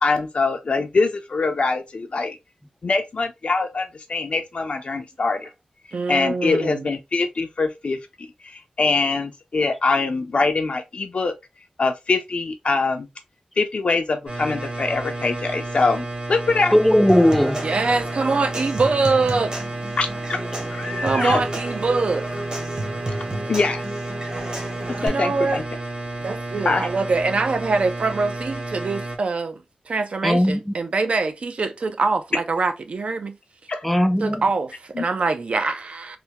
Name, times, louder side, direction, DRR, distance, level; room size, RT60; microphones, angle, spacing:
voice 1, 0.0-2.4 2.8-5.5 6.1-8.0 8.4-11.3 11.8-13.1 13.6-16.7 20.0-20.4 20.7-21.4 23.5-23.8 24.9-25.6 26.6-26.9 33.7-33.8 35.0-35.1, left 3 dB, 60° left, 0.5 m, -23 dB
voice 2, 5.9-6.8 17.6-19.6 21.0-22.4 25.0-25.6 26.2-33.4 34.2-36.2, right 3 dB, 60° right, 0.5 m, -24 dB
sound 1, 14.3-29.2, right 2 dB, 80° right, 1.5 m, -31 dB
voice 3, 16.7-17.6 30.2-30.7 33.8-34.4, equal, 5° left, 0.4 m, -17 dB
Human voice / Acoustic guitar / Percussion, 17.1-25.1, right 1 dB, 35° right, 1.0 m, -32 dB
3.3 x 2.2 x 2.8 m
wide cardioid pair, 115°, 2 cm